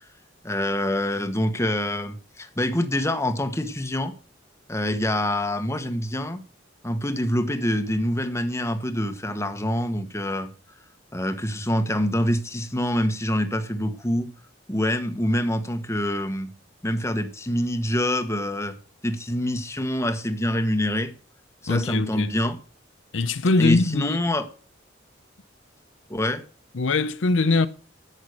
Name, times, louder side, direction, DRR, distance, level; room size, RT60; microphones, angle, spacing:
voice 1, 0.4-4.2 4.7-6.4 6.8-10.5 11.1-14.3 14.7-16.5 16.8-18.8 19.0-21.1 21.6-22.6 23.6-24.5 26.1-26.4, left 1 dB, 15° left, 1.3 m, -25 dB
voice 2, 21.7-22.3 23.1-24.2 26.7-27.7, left 3 dB, 80° left, 0.7 m, -22 dB
11.5 x 7.9 x 6.5 m
head